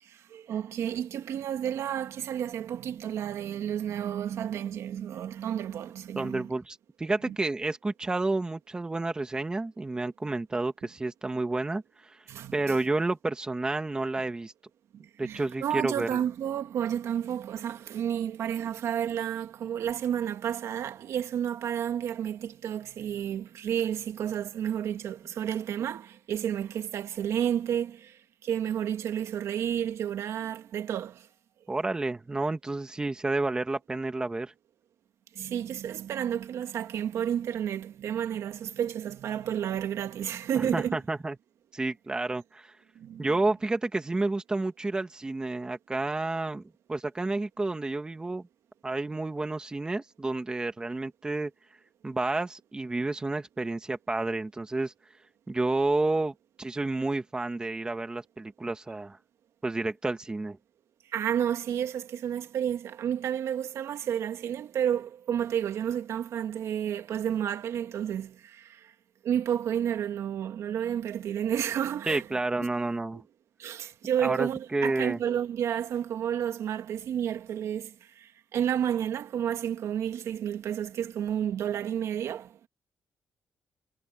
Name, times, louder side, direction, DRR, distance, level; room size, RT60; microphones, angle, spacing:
voice 1, 0.0-6.5 7.3-7.4 12.3-12.8 14.9-31.3 35.3-41.0 43.0-43.3 61.1-68.9 69.2-72.3 73.1-73.2 73.6-82.7, right 9 dB, 75° right, 2.3 m, -31 dB
voice 2, 6.2-12.2 12.5-14.5 15.2-16.2 31.7-34.5 40.6-41.4 41.7-42.7 43.2-46.6 46.9-48.4 48.8-51.5 52.0-54.9 55.5-59.2 59.6-60.6 72.1-73.2 74.2-75.2, right 2 dB, 15° right, 1.8 m, -30 dB
cardioid pair, 135°, 5 cm